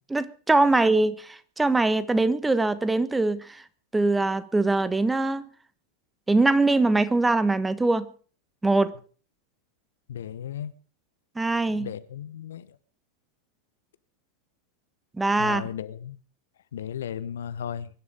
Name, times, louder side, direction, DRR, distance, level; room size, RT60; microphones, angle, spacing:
voice 1, 0.1-3.5 3.9-5.5 6.3-8.1 8.6-9.0 11.4-11.9 15.2-15.6, right 2 dB, 10° right, 1.3 m, -22 dB
voice 2, 10.1-10.7 11.7-12.7 15.4-16.2 16.7-17.9, left 9 dB, 60° left, 1.0 m, -35 dB
23.5 x 11.0 x 5.2 m
figure-of-eight pair, 90°, 0 cm